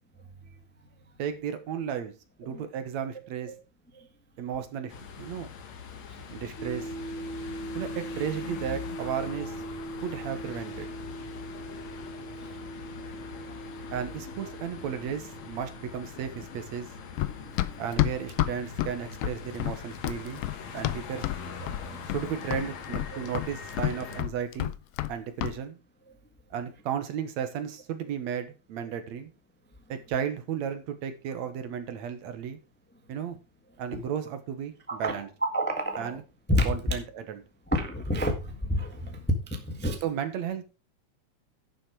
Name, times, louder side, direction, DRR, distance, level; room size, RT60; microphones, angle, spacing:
voice 1, 1.2-2.1 2.4-3.5 4.4-5.5 6.3-6.9 7.7-9.5 10.0-10.9 13.9-16.9 17.8-20.4 20.7-21.3 22.1-24.7 25.1-25.8 26.5-29.3 29.9-32.6 33.1-33.4 33.8-35.3 36.0-36.2 36.6-37.4 40.0-40.6, right 8 dB, 70° right, 2.4 m, -34 dB
sound 1, 4.9-24.2, left 6 dB, 65° left, 2.6 m, -42 dB
sound 2, 6.6-21.8, right 2 dB, 25° right, 1.7 m, -42 dB
Run, 17.2-21.4 21.7-22.3 22.5-25.1 25.4-25.6, left 15 dB, 85° left, 1.3 m, -29 dB
voice 2, 17.4-17.8 23.1-23.2 33.9-34.0 34.9-35.2 35.5-36.2 36.5-36.7 37.7-40.0, equal, 5° left, 0.8 m, -29 dB
11.0 x 7.1 x 4.8 m
omnidirectional pair, 3.4 m